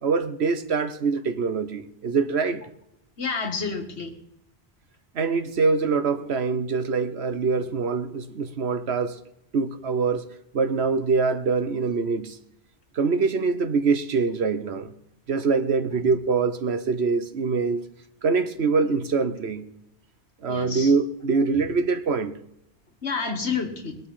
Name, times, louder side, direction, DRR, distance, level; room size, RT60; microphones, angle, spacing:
voice 1, 0.0-2.6 5.1-9.2 9.5-10.2 10.5-12.4 12.9-14.9 15.3-17.9 18.2-19.7 20.4-22.4, right 4 dB, 75° right, 1.3 m, -24 dB
voice 2, 3.2-4.2 15.9-16.1 20.5-20.9 21.5-21.6 23.0-24.0, left 5 dB, 80° left, 2.0 m, -30 dB
21.5 x 7.7 x 5.7 m
omnidirectional pair, 1.1 m